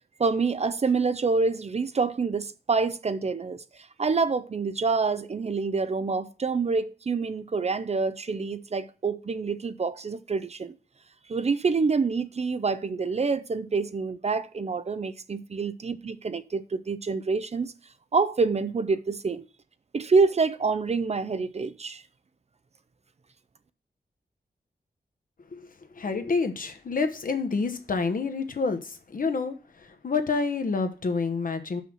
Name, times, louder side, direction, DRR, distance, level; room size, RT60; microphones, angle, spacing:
voice 1, 0.2-3.6 4.0-10.7 11.3-17.7 18.1-19.5 19.9-22.0, right 4 dB, 40° right, 0.5 m, -27 dB
voice 2, 25.9-31.8, left 4 dB, 55° left, 1.1 m, -28 dB
5.7 x 5.6 x 6.2 m
wide cardioid pair, 120°, 17 cm